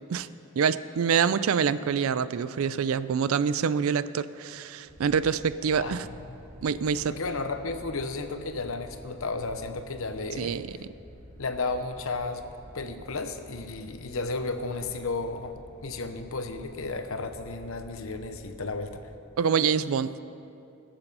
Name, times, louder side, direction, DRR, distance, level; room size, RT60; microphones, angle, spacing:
voice 1, 0.6-6.1 6.6-7.1 10.4-10.9 19.4-20.2, right 6 dB, 70° right, 15 dB, 0.4 m, -26 dB
sound 1, 4.8-19.0, equal, 55° right, 2.9 m, -49 dB
voice 2, 5.8-6.4 7.1-10.6 11.4-12.4 12.7-19.0, left 3 dB, 70° left, 8 dB, 0.8 m, -33 dB
20.0 x 7.1 x 5.4 m, 2.7 s
head